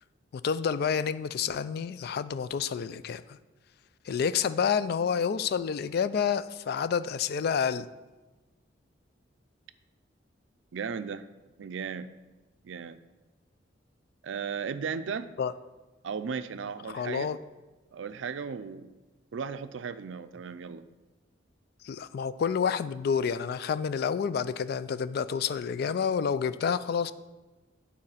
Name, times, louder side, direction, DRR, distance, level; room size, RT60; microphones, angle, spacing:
voice 1, 0.4-3.4 4.1-7.9 15.4-15.5 16.9-17.4 21.8-27.1, left 7 dB, 55° left, 15 dB, 0.3 m, -29 dB
voice 2, 10.7-11.3 11.6-12.1 12.6-13.0 14.2-15.3 16.0-17.3 17.9-18.9 19.3-20.8, right 6 dB, 80° right, 12 dB, 0.4 m, -35 dB
9.0 x 4.2 x 5.6 m, 1.2 s
head